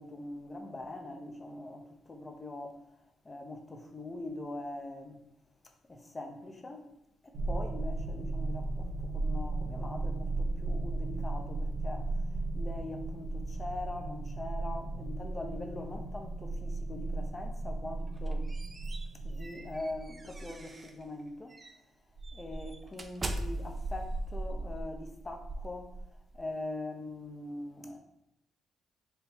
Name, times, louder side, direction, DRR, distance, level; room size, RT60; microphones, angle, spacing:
voice 1, 0.0-2.8 3.2-5.2 5.9-6.8 7.2-12.1 12.5-18.5 19.2-21.5 22.3-25.9 26.3-28.0, left 2 dB, 25° left, 0.7 m, -42 dB
sound 1, 7.3-20.6, right 2 dB, 75° right, 0.6 m, -35 dB
sound 2, 18.1-21.0 21.5-21.7 22.2-26.4, right 2 dB, 30° right, 0.4 m, -39 dB
3.5 x 2.8 x 4.4 m
cardioid pair, 90°, 0 cm